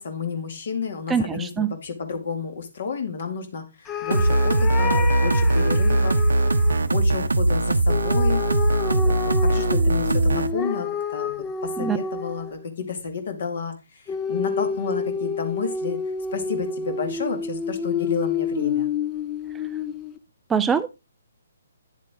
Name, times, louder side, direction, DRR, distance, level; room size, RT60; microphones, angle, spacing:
voice 1, 0.0-6.2 6.8-8.4 8.9-11.3 11.6-16.0 16.3-18.9, left 5 dB, 55° left, 7 dB, 2.2 m, -31 dB
voice 2, 1.1-1.7 11.8-12.0 20.5-20.9, right 6 dB, 10° right, 12 dB, 0.4 m, -23 dB
sound 1, 3.9-6.8 7.9-12.7 14.1-20.2, left 6 dB, 15° left, 0.7 m, -29 dB
sound 2, 4.1-10.5, right 2 dB, 75° right, 0.8 m, -20 dB
9.8 x 7.4 x 3.7 m, 0.25 s
figure-of-eight pair, 135°, 0 cm